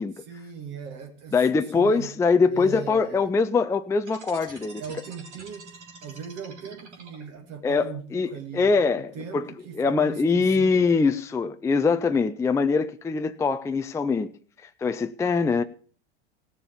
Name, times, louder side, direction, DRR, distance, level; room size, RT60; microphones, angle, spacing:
voice 1, 0.2-2.1 2.4-3.3 4.8-5.7 6.0-11.0, right 6 dB, 45° right, 2.1 m, -39 dB
voice 2, 1.3-4.8 7.6-9.1 9.3-9.5 9.8-14.3 14.8-15.6, left 4 dB, 10° left, 0.5 m, -23 dB
sound 1, 4.0-7.6, right 4 dB, 80° right, 3.6 m, -46 dB
16.5 x 7.0 x 7.0 m
hypercardioid pair, 90°, 34 cm